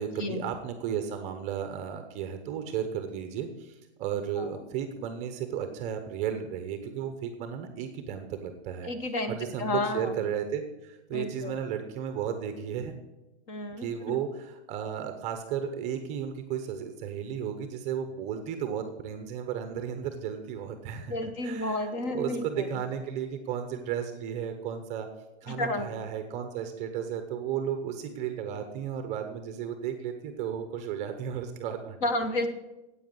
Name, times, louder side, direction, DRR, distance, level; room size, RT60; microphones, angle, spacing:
voice 1, 0.0-8.9 9.3-12.9 13.8-21.1 21.4-25.1 25.4-32.0, right 8 dB, 20° right, 7 dB, 0.8 m, -34 dB
voice 2, 8.8-10.2 11.1-11.5 13.5-14.2 21.1-22.8 25.5-25.9 32.0-32.5, left 2 dB, 30° left, 9 dB, 1.0 m, -31 dB
9.3 x 8.4 x 7.8 m, 1.0 s
hypercardioid pair, 160°, 34 cm